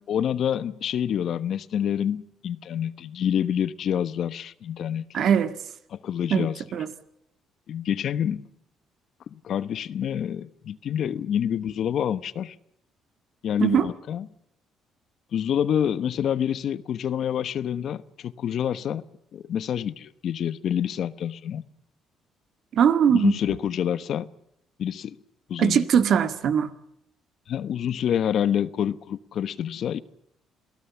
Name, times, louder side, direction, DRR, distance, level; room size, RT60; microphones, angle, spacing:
voice 1, 0.1-5.3 5.9-6.6 7.7-8.5 9.3-12.5 13.4-14.3 15.3-19.0 19.3-21.6 23.1-24.3 24.8-25.2 25.5-25.8 26.2-26.3 27.5-30.0, left 9 dB, 60° left, 1.0 m, -27 dB
voice 2, 5.1-5.5 6.3-6.9 13.6-13.9 22.7-23.3 25.6-26.7, right 8 dB, 60° right, 1.8 m, -21 dB
28.5 x 18.0 x 7.1 m
cardioid pair, 105°, 0 cm